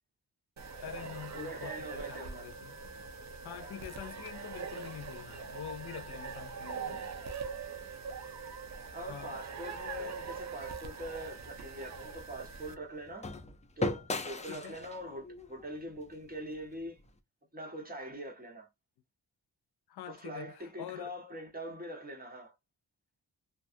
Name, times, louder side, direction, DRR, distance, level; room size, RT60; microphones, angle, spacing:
sound 1, 0.6-12.7, right 5 dB, 45° right, 0.7 m, -43 dB
voice 1, 0.8-3.1 3.4-7.0 7.4-7.5 9.0-9.4 14.4-14.8 19.9-21.1, left 10 dB, 90° left, 0.6 m, -46 dB
voice 2, 1.3-2.5 3.5-3.7 8.9-13.3 13.8-17.0 17.5-18.7 20.1-22.5, right 1 dB, 25° right, 1.4 m, -43 dB
sound 2, 11.0-17.1, left 2 dB, 20° left, 0.5 m, -40 dB
2.5 x 2.4 x 2.6 m
cardioid pair, 80°, 38 cm